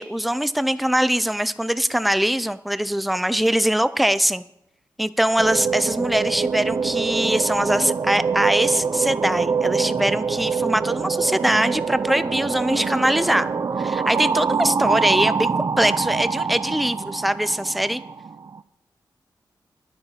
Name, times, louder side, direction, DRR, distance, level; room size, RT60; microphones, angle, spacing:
voice 1, 0.0-4.4 5.0-13.5 13.8-15.5 15.8-18.0, equal, ahead, 14 dB, 0.5 m, -22 dB
sound 1, 5.4-18.6, right 5 dB, 45° right, 0.5 m, -25 dB
10.5 x 9.8 x 6.9 m, 0.82 s
wide cardioid pair, 85°, 8 cm